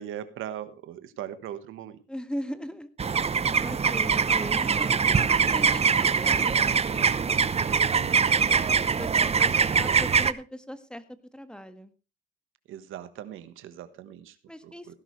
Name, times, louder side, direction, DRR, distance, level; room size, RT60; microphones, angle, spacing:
voice 1, 0.0-2.0 7.6-8.6 12.7-14.4 14.6-14.9, right 10 dB, 85° right, 12 dB, 1.3 m, -40 dB
voice 2, 2.1-2.9 3.6-7.9 8.9-11.9 14.5-14.9, equal, 5° left, 11 dB, 1.6 m, -39 dB
sound 1, 3.0-10.3, right 6 dB, 30° right, 0.8 m, -23 dB
17.0 x 11.0 x 3.2 m, 0.32 s
cardioid pair, 90°, 20 cm